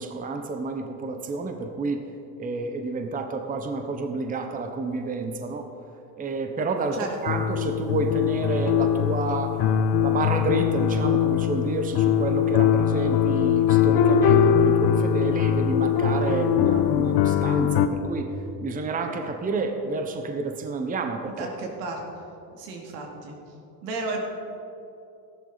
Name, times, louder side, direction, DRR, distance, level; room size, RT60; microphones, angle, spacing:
voice 1, 0.0-2.0 2.4-5.7 6.2-9.6 10.0-18.3 18.6-21.5, right 3 dB, 15° right, 5 dB, 0.8 m, -29 dB
voice 2, 6.9-7.4 21.4-22.0 22.5-23.4 23.8-24.2, right 3 dB, 80° right, 1 dB, 2.5 m, -33 dB
sound 1, 7.3-17.9, left 8 dB, 50° left, 0.9 m, -21 dB
14.0 x 11.0 x 4.0 m, 2.7 s
supercardioid pair, 110°, 49 cm